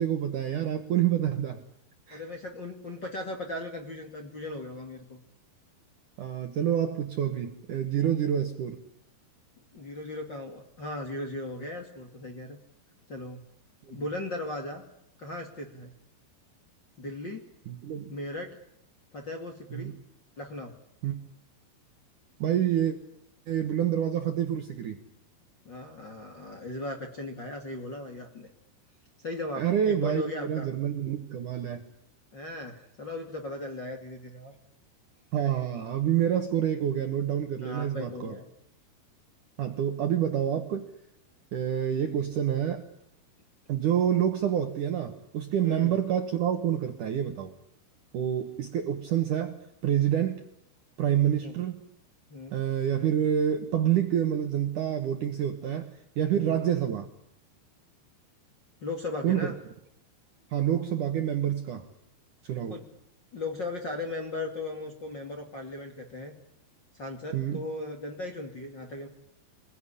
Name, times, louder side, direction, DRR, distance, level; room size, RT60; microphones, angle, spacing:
voice 1, 0.0-1.6 2.1-2.2 6.2-8.8 13.9-14.0 17.7-18.1 19.7-19.9 21.0-21.2 22.4-23.0 23.5-25.0 29.6-31.8 35.3-38.4 39.6-40.9 41.5-42.9 43.7-47.5 48.1-50.4 51.0-51.8 52.5-57.1 59.2-59.5 60.5-61.9 62.4-62.8 67.3-67.6, right 10 dB, 60° right, 6 dB, 2.2 m, -27 dB
voice 2, 2.1-5.2 9.7-12.6 13.1-13.4 13.9-14.8 15.2-15.9 17.0-17.4 18.1-18.5 19.1-19.9 20.4-20.7 25.6-28.5 29.2-30.7 32.3-34.5 37.6-38.5 45.6-45.9 51.4-51.5 52.3-52.6 56.3-56.6 58.8-59.6 62.7-62.8 63.3-66.3 67.0-69.1, left 2 dB, 35° left, 1 dB, 2.1 m, -37 dB
26.5 x 22.0 x 10.0 m, 0.77 s
omnidirectional pair, 5.3 m